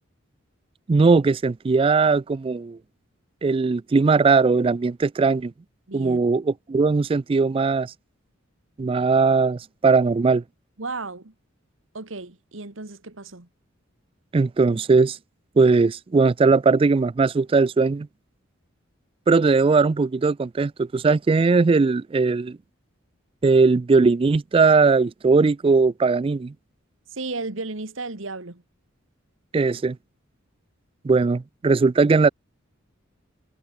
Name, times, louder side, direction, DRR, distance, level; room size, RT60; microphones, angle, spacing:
voice 1, 0.9-2.8 3.4-5.5 5.9-7.9 8.8-10.4 14.3-15.2 15.6-18.1 19.3-22.6 23.4-26.5 29.5-30.0 31.0-32.3, right 4 dB, 25° right, 0.3 m, -19 dB
voice 2, 5.9-6.2 10.8-11.3 11.9-13.5 27.1-28.6, right 3 dB, 70° right, 1.8 m, -34 dB
head